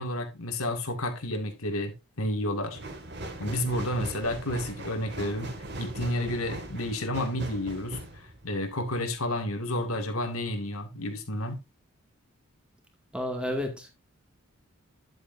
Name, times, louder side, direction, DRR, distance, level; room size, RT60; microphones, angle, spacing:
voice 1, 0.0-2.8 3.4-8.0 8.4-11.6, left 1 dB, 80° left, 2.1 m, -31 dB
sound 1, 2.7-9.3 9.7-9.8, right 1 dB, 50° right, 2.1 m, -40 dB
voice 2, 13.1-13.9, left 1 dB, 5° right, 2.1 m, -31 dB
10.5 x 8.1 x 2.7 m
head